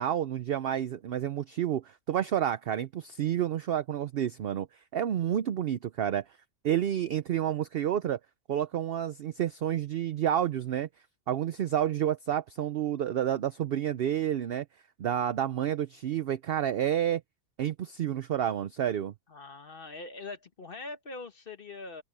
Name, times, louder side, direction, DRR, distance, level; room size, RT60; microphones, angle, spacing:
voice 1, 0.0-4.7 4.9-6.2 6.6-8.2 8.5-10.9 11.3-14.6 15.0-17.2 17.6-19.1, right 10 dB, 65° right, 0.6 m, -29 dB
voice 2, 19.3-22.0, left 3 dB, 40° left, 1.3 m, -42 dB
open air
omnidirectional pair, 1.6 m